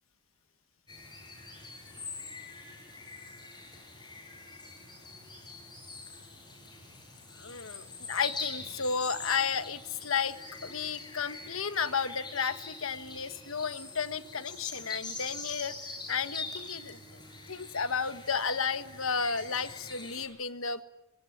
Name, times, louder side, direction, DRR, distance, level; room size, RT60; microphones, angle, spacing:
sound 1, 0.9-20.3, left 3 dB, 20° left, 8.0 m, -44 dB
voice 1, 7.4-10.4 10.6-17.2 17.5-20.8, left 6 dB, 65° left, 11 dB, 1.5 m, -33 dB
25.5 x 24.5 x 9.4 m, 0.83 s
head